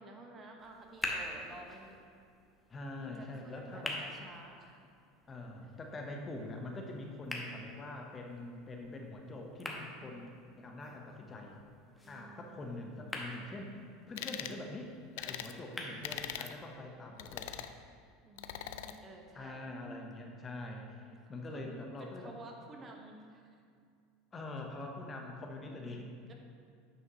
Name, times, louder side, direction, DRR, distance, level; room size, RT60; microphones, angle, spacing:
voice 1, 0.0-2.0 3.0-4.8 5.6-5.7 10.0-10.5 12.0-12.6 18.2-19.6 21.1-21.2 21.5-23.5 25.6-26.3, right 2 dB, 30° right, 2 dB, 1.1 m, -52 dB
sound 1, 0.6-16.6, left 1 dB, 10° left, 1.1 m, -47 dB
voice 2, 2.7-4.0 5.3-10.3 10.6-11.5 12.1-13.7 14.1-17.5 19.3-22.3 24.3-26.1, left 2 dB, 30° left, 2 dB, 0.9 m, -44 dB
sound 2, 14.2-14.6 15.2-15.5 16.0-16.5 17.2-17.7 18.4-18.9, left 11 dB, 75° left, 0.3 m, -41 dB
9.4 x 5.5 x 3.0 m, 2.3 s
hypercardioid pair, 95°, 0 cm